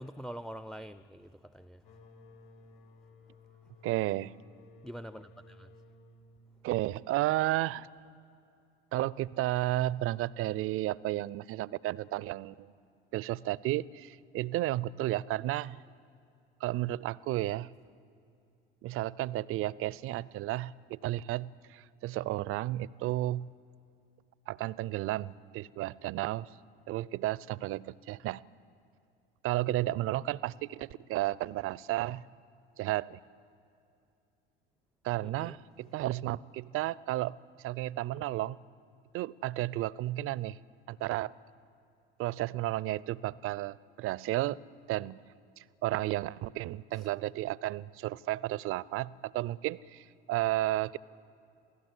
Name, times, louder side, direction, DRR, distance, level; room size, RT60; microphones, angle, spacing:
voice 1, 0.0-1.8 4.8-5.7 35.2-35.6 46.9-47.1, equal, ahead, 16 dB, 0.6 m, -45 dB
sound 1, 1.8-7.3, left 2 dB, 75° left, 4.3 m, -57 dB
voice 2, 3.8-4.3 6.6-7.9 8.9-12.7 13.1-15.8 16.6-17.7 18.8-23.5 24.5-26.5 26.9-28.5 29.4-32.2 32.8-33.2 35.0-37.4 37.6-38.6 39.1-40.6 40.9-41.3 42.2-44.6 44.9-45.2 45.6-51.0, right 16 dB, 45° right, 23 dB, 0.6 m, -33 dB
28.0 x 16.5 x 8.3 m, 2.6 s
figure-of-eight pair, 65°, 30 cm